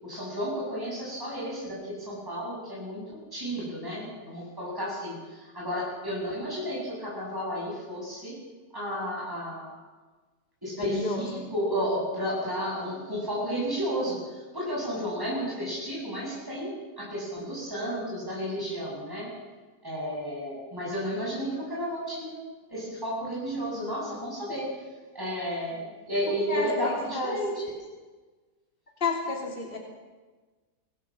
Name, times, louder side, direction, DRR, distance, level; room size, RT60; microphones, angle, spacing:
voice 1, 0.0-8.4 8.7-9.8 10.6-19.3 19.8-22.4 22.7-24.7 25.1-27.7, equal, 10° right, -5 dB, 7.6 m, -32 dB
voice 2, 10.8-11.4 26.5-27.4 29.0-29.8, left 3 dB, 35° left, 0 dB, 3.1 m, -31 dB
25.0 x 17.0 x 7.6 m, 1.3 s
omnidirectional pair, 1.8 m